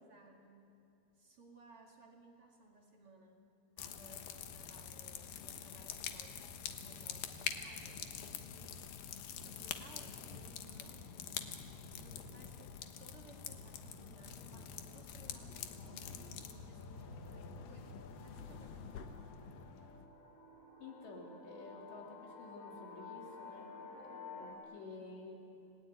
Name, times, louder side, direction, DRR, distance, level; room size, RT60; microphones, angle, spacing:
voice 1, 0.1-0.7 1.1-3.4 3.8-8.7 9.4-11.5 11.9-19.0 24.1-24.5, right 3 dB, 40° right, 1 dB, 2.3 m, -61 dB
sound 1, 3.8-20.1, left 8 dB, 65° left, 2.7 m, -46 dB
sound 2, 15.5-24.5, left 4 dB, 20° left, 4.6 m, -54 dB
voice 2, 20.8-25.4, left 3 dB, 90° left, 0 dB, 5.8 m, -51 dB
28.5 x 19.5 x 9.2 m, 2.6 s
omnidirectional pair, 4.8 m